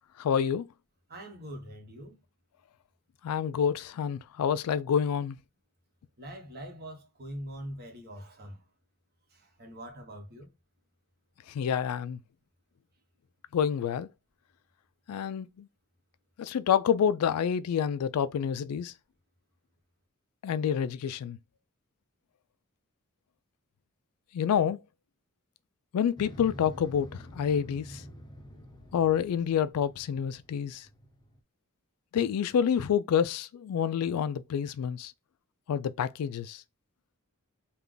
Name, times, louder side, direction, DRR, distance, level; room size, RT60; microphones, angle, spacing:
voice 1, 0.2-0.7 3.2-5.4 11.5-12.2 13.5-14.1 15.1-15.7 16.4-18.9 20.4-21.4 24.3-24.8 25.9-27.1 27.3-28.0 28.9-30.9 32.1-35.1 35.7-36.6, left 8 dB, 85° left, 0.3 m, -28 dB
voice 2, 1.1-2.1 6.2-8.6 9.3-10.5, equal, 45° right, 1.2 m, -43 dB
Motorcycle, 26.2-31.4, equal, 20° left, 0.7 m, -47 dB
3.4 x 2.4 x 3.7 m
head